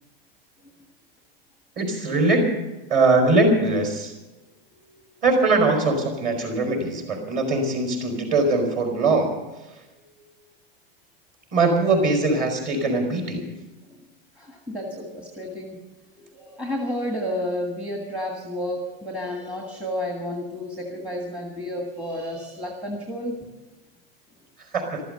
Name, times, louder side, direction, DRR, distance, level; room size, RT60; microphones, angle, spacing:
voice 1, 1.8-2.5 2.9-4.1 5.2-9.4 11.5-13.4 24.7-25.0, right 2 dB, 30° right, 3 dB, 4.3 m, -21 dB
voice 2, 4.7-5.0 9.9-10.5 13.9-14.0 14.3-15.8 16.1-23.5, left 1 dB, 5° right, 1 dB, 1.6 m, -31 dB
14.0 x 13.0 x 7.7 m, 1.1 s
supercardioid pair, 165°, 30 cm